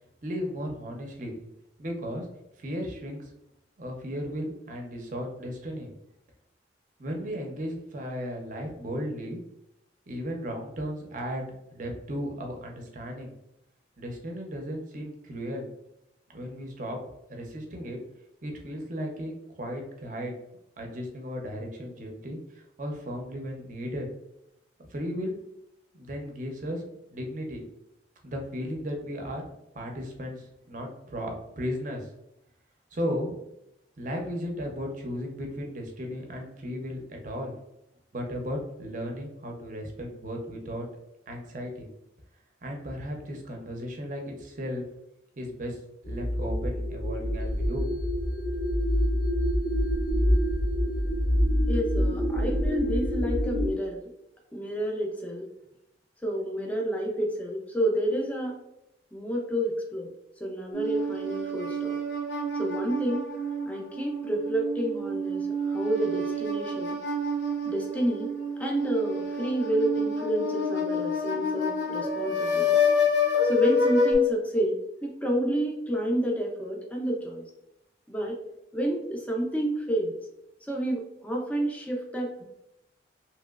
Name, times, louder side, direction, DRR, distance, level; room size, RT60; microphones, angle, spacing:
voice 1, 0.2-1.4 1.8-2.3 2.6-3.3 3.8-5.9 7.0-9.4 10.1-13.3 14.0-15.7 16.3-17.0 17.3-18.0 18.4-20.3 20.8-24.1 24.9-25.4 26.0-26.8 27.1-27.6 28.2-29.4 29.7-32.1 32.9-33.5 34.0-37.6 38.1-40.9 41.3-41.9 42.6-44.8 45.4-45.8 46.0-47.9 48.3-48.4, equal, 45° right, 2 dB, 0.6 m, -35 dB
sound 1, 46.0-53.7, equal, 60° left, 0.6 m, -26 dB
voice 2, 51.7-54.1 54.5-55.5 56.2-58.6 59.1-60.1 60.4-62.0 62.5-63.2 63.7-67.0 67.7-68.3 68.6-72.8 73.4-77.5 78.1-78.4 78.7-80.2 80.6-82.4, right 1 dB, 10° left, 0 dB, 0.5 m, -29 dB
sound 2, 60.7-74.1, left 2 dB, 80° left, 0.9 m, -28 dB
3.0 x 2.9 x 2.3 m, 0.84 s
head